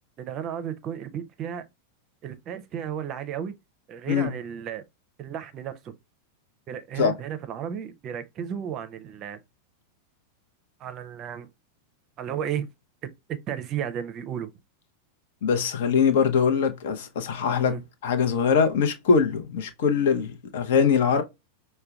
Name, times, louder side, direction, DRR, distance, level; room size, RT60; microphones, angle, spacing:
voice 1, 0.2-1.7 2.2-3.5 3.9-4.8 5.2-5.9 6.7-9.4 10.8-11.5 12.2-12.7 13.5-14.5 17.6-17.8, right 9 dB, 35° right, 0.5 m, -33 dB
voice 2, 15.4-17.7 18.0-21.2, left 6 dB, 55° left, 0.7 m, -22 dB
5.5 x 2.2 x 2.4 m
figure-of-eight pair, 90°, 0 cm